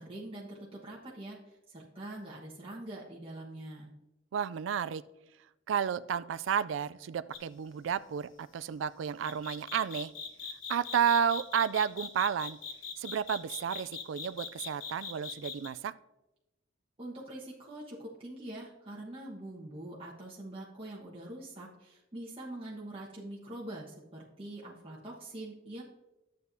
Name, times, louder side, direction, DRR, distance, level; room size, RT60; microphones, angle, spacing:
voice 1, 0.0-3.9 17.0-25.8, right 1 dB, 30° right, -5 dB, 1.3 m, -44 dB
voice 2, 4.3-5.0 5.7-10.1 10.7-12.6 13.0-15.9, right 8 dB, 75° right, 16 dB, 0.3 m, -31 dB
sound 1, 7.3-7.6 9.2-15.7, left 6 dB, 85° left, 1.0 m, -41 dB
11.5 x 7.7 x 2.7 m, 0.95 s
head